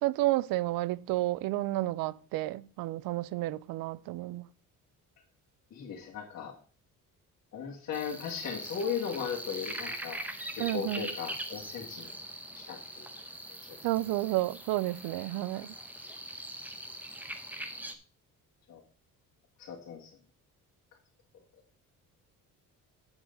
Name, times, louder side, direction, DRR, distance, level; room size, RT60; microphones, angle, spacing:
voice 1, 0.0-4.5 10.6-11.1 13.8-15.7, right 17 dB, 90° right, 0.5 m, -31 dB
voice 2, 5.7-6.5 7.5-10.2 10.6-12.2 12.6-13.1 13.7-13.8 18.7-18.8 19.6-20.1, left 7 dB, 55° left, 1.9 m, -37 dB
sound 1, 7.9-17.9, right 1 dB, 5° right, 0.8 m, -42 dB
9.4 x 7.2 x 3.9 m
cardioid pair, 150°, 34 cm